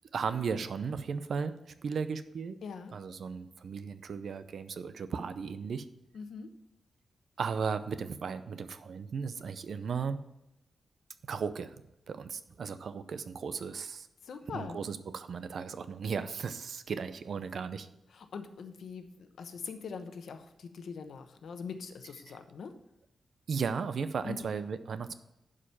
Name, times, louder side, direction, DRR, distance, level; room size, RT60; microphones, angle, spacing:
voice 1, 0.1-2.6 2.9-5.9 7.4-10.2 11.3-11.8 12.1-14.1 14.5-17.9 23.5-25.1, right 6 dB, 65° right, 12 dB, 0.6 m, -36 dB
voice 2, 2.6-2.9 6.1-6.5 14.2-14.8 18.1-22.7 24.2-24.5, left 5 dB, 85° left, 7 dB, 0.9 m, -42 dB
11.0 x 5.0 x 5.8 m, 0.89 s
wide cardioid pair, 155°, 0 cm